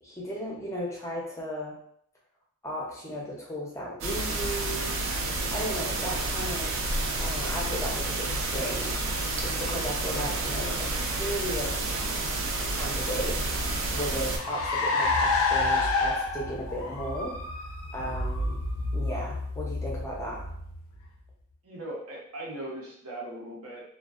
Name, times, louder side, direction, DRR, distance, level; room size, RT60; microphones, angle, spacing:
voice 1, 0.0-1.8 2.6-4.9 5.3-6.7 7.2-12.0 12.6-17.4 17.9-18.6 18.9-20.5, equal, 15° left, -4 dB, 0.5 m, -36 dB
sound 1, 4.0-14.4, right 2 dB, 60° right, 0.4 m, -30 dB
Car, 13.3-21.1, left 3 dB, 70° left, 0.4 m, -29 dB
voice 2, 21.6-23.8, right 1 dB, 80° right, -4 dB, 0.8 m, -39 dB
2.5 x 2.1 x 2.3 m, 0.66 s
head